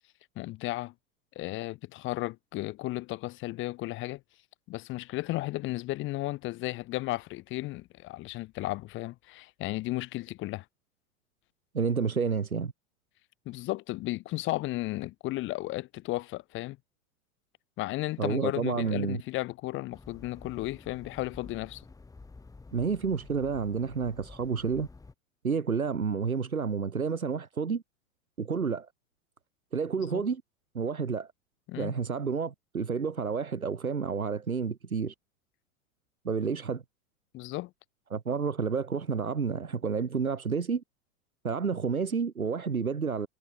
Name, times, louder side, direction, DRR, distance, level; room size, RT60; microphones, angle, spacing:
voice 1, 0.4-0.9 1.4-4.2 4.7-10.6 13.5-16.8 17.8-21.8 30.1-30.2 31.7-31.9 37.3-37.7, left 18 dB, 30° left, 0.8 m, -34 dB
voice 2, 11.7-12.7 18.2-19.2 22.7-24.9 25.4-27.8 28.4-28.9 29.7-30.4 30.7-31.3 31.8-35.1 36.2-36.8 38.1-40.8 41.4-43.3, right 5 dB, 90° right, 0.9 m, -30 dB
sound 1, 19.9-25.1, left 3 dB, 10° left, 1.7 m, -50 dB
figure-of-eight pair, 90°, 41 cm